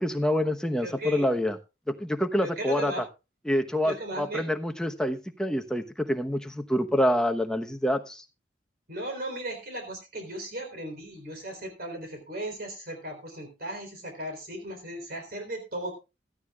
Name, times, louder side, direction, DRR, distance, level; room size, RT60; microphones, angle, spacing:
voice 1, 0.0-1.6 1.9-3.0 3.5-8.2, equal, 5° left, 5 dB, 1.0 m, -27 dB
voice 2, 0.8-1.3 2.4-3.0 3.8-4.5 8.9-15.9, right 1 dB, 55° right, 4 dB, 3.8 m, -36 dB
16.5 x 13.0 x 2.4 m, 0.28 s
head